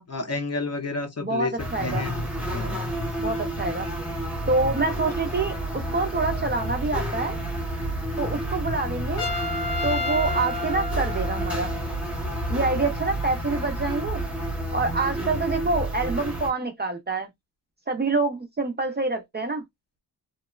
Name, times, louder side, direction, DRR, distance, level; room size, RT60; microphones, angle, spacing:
voice 1, 0.1-1.5 1.8-2.2 2.5-2.8, left 3 dB, 40° left, 0.6 m, -30 dB
voice 2, 1.2-2.0 3.2-3.9 4.5-7.4 8.2-9.3 9.8-11.7 12.5-14.2 14.7-17.3 17.9-19.6, right 3 dB, 25° right, 0.4 m, -26 dB
sound 1, 1.6-16.5, right 1 dB, 5° right, 0.7 m, -30 dB
Trumpet, 9.2-11.9, left 2 dB, 75° left, 0.9 m, -31 dB
2.9 x 2.0 x 2.3 m
wide cardioid pair, 160°, 40 cm